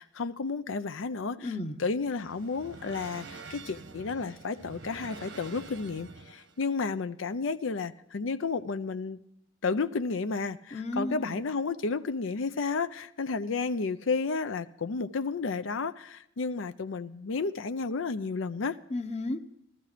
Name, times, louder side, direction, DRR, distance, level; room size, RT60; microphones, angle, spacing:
voice 1, 0.0-9.2 9.6-18.8, left 4 dB, 85° left, 0.6 m, -32 dB
voice 2, 1.4-1.8 10.7-11.4 18.9-19.4, left 2 dB, 35° left, 0.8 m, -33 dB
sound 1, 1.6-6.6, right 3 dB, 75° right, 1.2 m, -47 dB
14.5 x 14.0 x 5.0 m
head